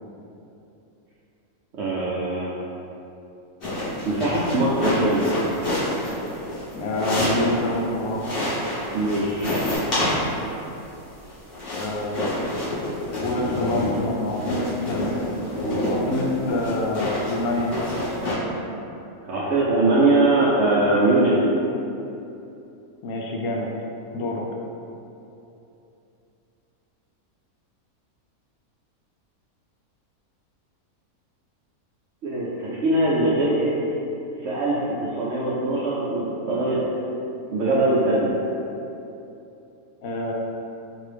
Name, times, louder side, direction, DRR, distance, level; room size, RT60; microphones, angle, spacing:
voice 1, 1.8-2.5 4.0-5.2 8.9-9.6 19.3-21.3 32.2-33.7 34.4-34.8 35.0-36.8 37.5-38.3, right 2 dB, 70° right, -7 dB, 0.7 m, -21 dB
sound 1, 3.6-7.8 8.2-10.5 11.2-18.3, left 1 dB, 40° left, 1.4 m, -27 dB
sound 2, 5.0-6.4 6.7-6.8 9.4-9.8, left 2 dB, 55° left, 1.1 m, -44 dB
voice 2, 6.7-8.4 11.7-12.7 13.2-15.2 15.9-17.7 23.0-23.7 24.1-24.4 40.0-40.3, left 1 dB, 75° left, -2 dB, 1.0 m, -27 dB
3.8 x 2.6 x 3.3 m, 2.8 s
omnidirectional pair, 1.6 m